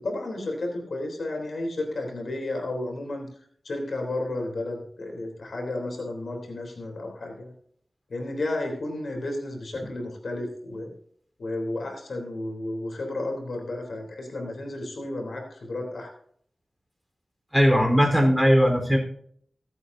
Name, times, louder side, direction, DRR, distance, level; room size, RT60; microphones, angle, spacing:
voice 1, 0.0-3.3 3.6-7.5 8.1-10.9 11.4-16.1, left 2 dB, 80° left, 1 dB, 3.4 m, -32 dB
voice 2, 17.5-19.0, equal, 5° right, 1 dB, 4.0 m, -19 dB
24.5 x 8.3 x 2.7 m, 0.62 s
wide cardioid pair, 65°, 0 cm